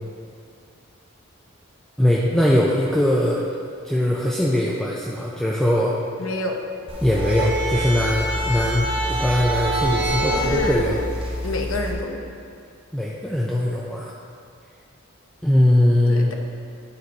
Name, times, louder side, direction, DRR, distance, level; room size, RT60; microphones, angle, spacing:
voice 1, 2.0-3.4 3.8-6.0 7.0-11.0 12.9-14.1 15.4-16.3, left 1 dB, 5° left, -5 dB, 0.4 m, -21 dB
voice 2, 6.2-6.6 10.3-11.0 11.4-12.2 16.1-16.3, left 2 dB, 70° left, 2 dB, 0.8 m, -27 dB
sound 1, 6.9-11.9, right 1 dB, 25° right, 1.0 m, -25 dB
9.8 x 4.0 x 4.7 m, 2.3 s
head